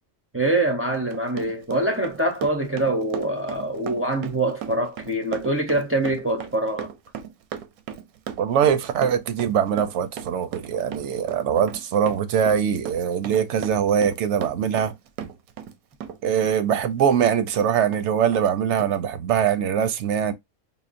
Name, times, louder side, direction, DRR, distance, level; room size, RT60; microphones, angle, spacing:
voice 1, 0.3-6.9, right 2 dB, 20° right, 0.3 m, -24 dB
Run, 0.9-15.8 16.0-17.6 17.9-18.0 18.3-18.5 18.8-18.9, right 9 dB, 85° right, 1.1 m, -36 dB
voice 2, 8.4-14.9 16.2-20.3, right 8 dB, 65° right, 0.8 m, -22 dB
5.6 x 2.1 x 2.4 m
omnidirectional pair, 1.5 m